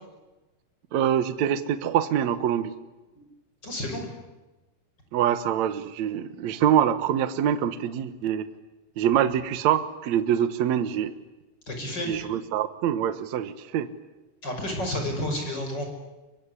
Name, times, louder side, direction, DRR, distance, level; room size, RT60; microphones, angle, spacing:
voice 1, 0.9-2.7 5.1-8.5 9.0-11.1 12.1-13.9, right 10 dB, 65° right, 11 dB, 1.8 m, -25 dB
voice 2, 3.6-4.1 11.7-12.2 14.4-15.9, left 1 dB, 25° left, 3 dB, 6.3 m, -30 dB
24.5 x 23.5 x 9.9 m, 1.1 s
omnidirectional pair, 4.6 m